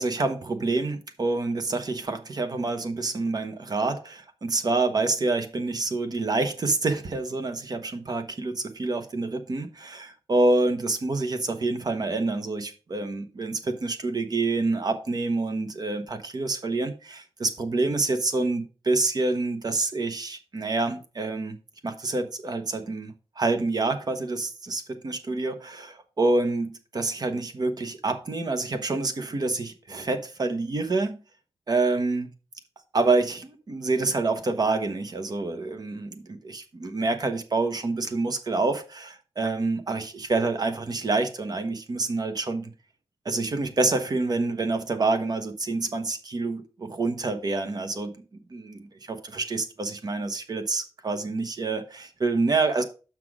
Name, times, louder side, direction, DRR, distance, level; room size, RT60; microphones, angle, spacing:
voice 1, 0.0-21.6 21.8-31.2 31.7-32.3 32.9-42.6 43.2-48.1 48.5-52.8, right 3 dB, 40° right, 1.0 m, -27 dB
6.1 x 5.9 x 4.8 m
wide cardioid pair, 145°, 10 cm